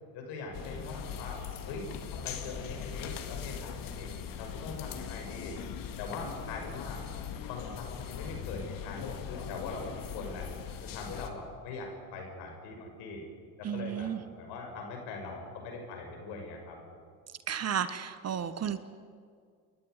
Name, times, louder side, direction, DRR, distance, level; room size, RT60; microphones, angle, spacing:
voice 1, 0.1-1.4 1.7-1.9 2.2-4.1 4.4-5.5 6.0-7.0 7.4-10.5 10.8-13.2 13.6-17.0, left 3 dB, 65° left, 2 dB, 6.8 m, -42 dB
sound 1, 0.5-11.3, left 7 dB, 50° left, 2.3 m, -40 dB
voice 2, 13.6-14.2 17.5-18.8, right 9 dB, 35° right, 13 dB, 1.3 m, -33 dB
29.0 x 11.5 x 9.6 m, 2.1 s
hypercardioid pair, 75°, 43 cm